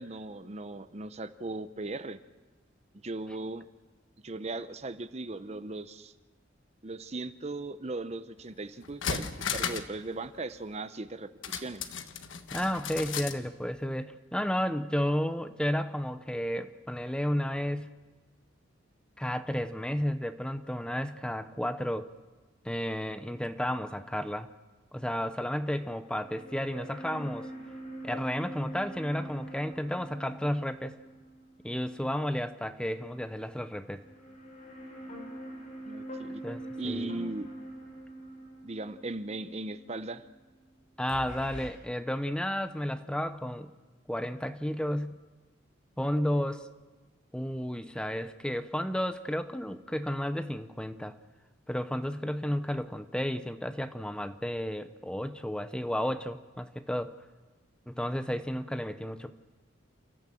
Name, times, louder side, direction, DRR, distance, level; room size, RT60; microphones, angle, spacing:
voice 1, 0.0-2.2 3.0-3.7 4.2-6.1 6.8-11.8 35.8-36.4 36.8-37.5 38.6-40.2, right 2 dB, 35° right, 13 dB, 0.7 m, -38 dB
sound 1, 8.4-8.5 8.8-10.0 10.2-10.3 11.4-13.4 13.7-13.8, left 6 dB, 75° left, 1.4 m, -35 dB
voice 2, 12.5-17.9 19.2-22.1 22.6-24.5 24.9-27.5 28.0-30.9 31.6-34.0 36.4-37.1 41.0-43.7 44.1-45.1 46.0-46.7 47.3-51.1 51.7-57.2 57.9-59.3, equal, 5° left, 10 dB, 0.8 m, -32 dB
sound 2, 26.0-32.3 32.6-32.7 33.7-40.7 41.1-41.7, right 1 dB, 40° left, 6.9 m, -44 dB
29.5 x 14.5 x 7.7 m, 1.3 s
head